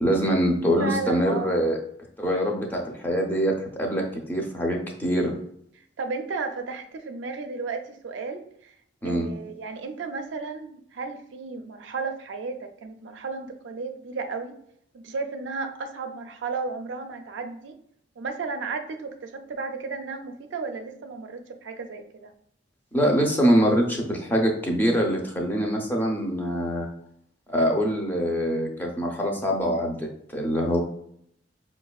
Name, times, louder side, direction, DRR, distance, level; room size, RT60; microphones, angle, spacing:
voice 1, 0.0-1.8 2.2-5.3 9.0-9.3 22.9-26.9 27.5-30.8, equal, 10° left, -1 dB, 0.5 m, -24 dB
voice 2, 0.8-1.6 6.0-8.7 9.0-14.5 14.9-17.7 18.2-22.3, right 4 dB, 85° right, 6 dB, 0.4 m, -34 dB
4.9 x 2.3 x 2.3 m, 0.70 s
head